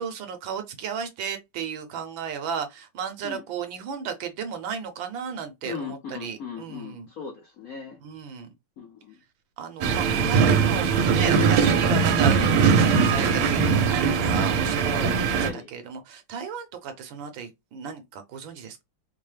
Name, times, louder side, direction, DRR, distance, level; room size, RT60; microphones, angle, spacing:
voice 1, 0.0-7.1 8.0-8.5 9.6-15.0 15.3-18.8, right 7 dB, 70° right, 1.4 m, -34 dB
voice 2, 5.6-8.0 8.8-9.2 14.9-15.7, left 6 dB, 70° left, 0.8 m, -38 dB
sound 1, 9.8-15.5, right 5 dB, 85° right, 1.6 m, -21 dB
4.5 x 2.0 x 3.2 m
omnidirectional pair, 2.4 m